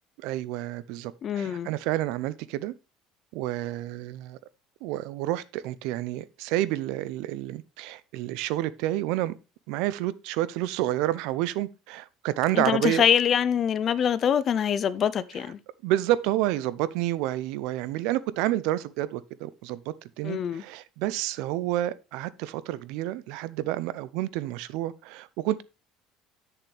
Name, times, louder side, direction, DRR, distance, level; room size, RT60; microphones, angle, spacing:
voice 1, 0.2-2.7 3.3-4.4 4.8-9.3 9.7-13.0 15.8-25.6, right 15 dB, 70° right, 0.5 m, -29 dB
voice 2, 1.2-1.7 12.5-15.6 20.2-20.6, left 8 dB, 30° left, 0.4 m, -24 dB
8.4 x 6.8 x 3.3 m
cardioid pair, 175°, 0 cm